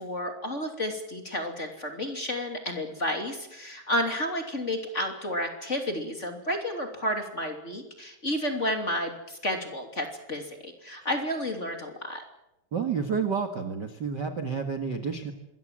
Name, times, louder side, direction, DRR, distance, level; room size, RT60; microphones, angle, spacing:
voice 1, 0.0-12.2, left 1 dB, 20° left, 4 dB, 3.0 m, -31 dB
voice 2, 12.7-15.3, right 6 dB, 40° right, 5 dB, 1.8 m, -30 dB
26.5 x 21.5 x 7.6 m, 0.90 s
omnidirectional pair, 3.9 m